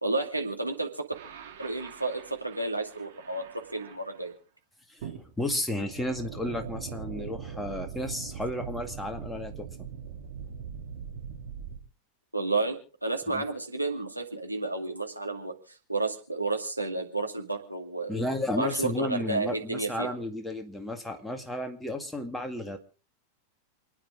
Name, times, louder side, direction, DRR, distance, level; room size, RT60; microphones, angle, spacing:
voice 1, 0.0-1.1 1.6-3.4 3.7-4.3 12.3-18.1 18.6-20.1, right 3 dB, 85° right, 2 dB, 2.3 m, -31 dB
sound 1, 1.1-4.3 5.0-11.8, right 7 dB, 55° right, 2.9 m, -41 dB
voice 2, 5.4-9.7 13.3-13.4 18.1-22.8, left 1 dB, 5° left, 4 dB, 2.1 m, -33 dB
28.5 x 9.7 x 3.8 m, 0.38 s
figure-of-eight pair, 90°, 0 cm